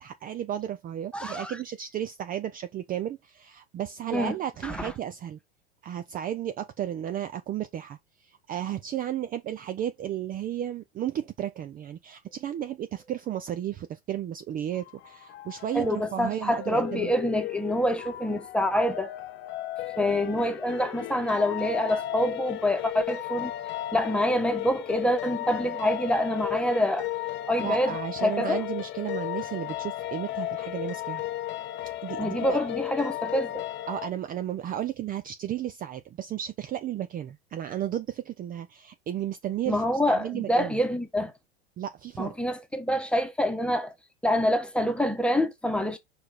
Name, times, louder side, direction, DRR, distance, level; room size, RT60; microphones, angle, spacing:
voice 1, 0.0-5.4 5.8-17.1 27.6-31.2 32.0-32.6 33.9-40.7 41.8-42.4, right 11 dB, 25° right, 0.6 m, -33 dB
voice 2, 1.1-1.6 4.1-4.3 4.6-4.9 15.7-19.1 20.0-23.5 23.9-27.1 27.5-28.6 32.2-33.6 39.7-41.3 42.2-43.9 44.2-46.0, equal, 5° left, 1.4 m, -26 dB
sound 1, 14.7-34.1, left 14 dB, 35° left, 0.7 m, -35 dB
5.0 x 4.6 x 4.3 m
hypercardioid pair, 95°, 32 cm